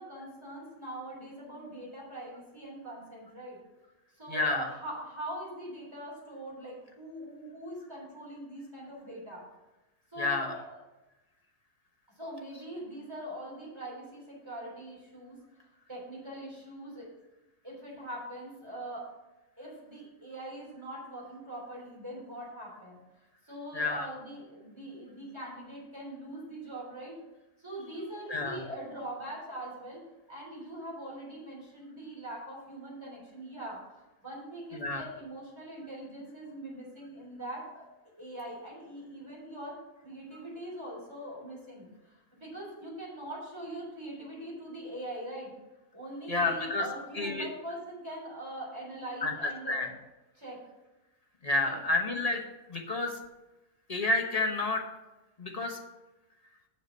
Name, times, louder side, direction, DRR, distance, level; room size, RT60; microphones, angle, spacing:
voice 1, 0.0-3.6 4.1-9.5 10.1-10.8 12.1-15.4 15.9-17.1 17.6-19.1 19.6-23.0 23.4-27.2 27.6-30.0 30.3-37.9 38.2-39.8 40.0-45.5 45.9-49.8 50.3-50.6 51.6-51.8, right 1 dB, 20° right, -5 dB, 3.5 m, -42 dB
voice 2, 4.3-4.7 10.2-10.5 23.7-24.1 28.3-28.6 34.8-35.0 46.3-46.8 47.2-47.5 49.2-49.3 49.7-49.9 51.4-52.4 52.7-53.2 53.9-54.8 55.4-55.8, left 2 dB, 30° left, 2 dB, 0.9 m, -29 dB
7.5 x 6.5 x 5.5 m, 1.0 s
omnidirectional pair, 1.5 m